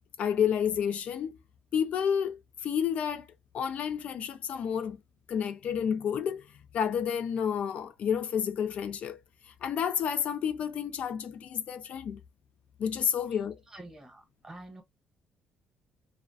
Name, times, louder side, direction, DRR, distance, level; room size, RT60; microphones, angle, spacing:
voice 1, 0.2-1.4 1.7-3.3 3.5-5.0 5.3-6.5 6.7-9.2 9.6-12.2 12.8-13.6, left 8 dB, 60° left, 0.3 m, -30 dB
voice 2, 13.7-14.8, right 1 dB, 20° right, 0.9 m, -48 dB
2.3 x 2.0 x 2.5 m
cardioid pair, 110°, 3 cm